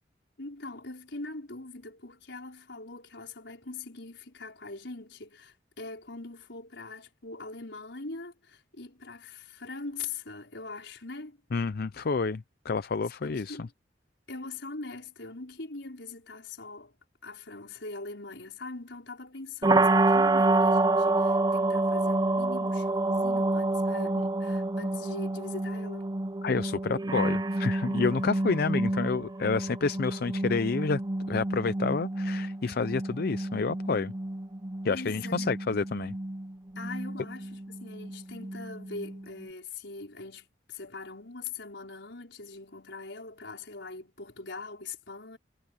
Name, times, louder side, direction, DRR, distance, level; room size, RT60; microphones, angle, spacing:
voice 1, 0.4-11.4 13.2-13.7 14.3-16.9 17.2-26.1 34.9-35.5 36.8-45.4, left 3 dB, 75° left, 5.2 m, -42 dB
voice 2, 11.5-13.7 26.4-31.0 31.3-34.1 34.8-36.1, left 4 dB, 55° left, 0.5 m, -29 dB
sound 1, 19.6-39.4, right 2 dB, 20° right, 0.6 m, -28 dB
head